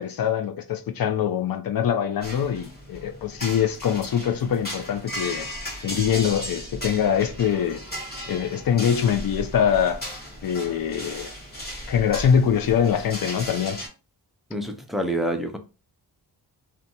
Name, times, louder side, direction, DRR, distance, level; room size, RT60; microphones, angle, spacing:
voice 1, 0.0-5.5 5.8-7.8 8.3-10.0 10.4-11.3 11.9-13.8, left 8 dB, 55° left, 0.5 m, -23 dB
sound 1, 2.2-13.9, equal, 20° left, 1.2 m, -36 dB
voice 2, 14.5-15.6, right 1 dB, ahead, 0.3 m, -27 dB
2.5 x 2.2 x 2.8 m
wide cardioid pair, 135°, 42 cm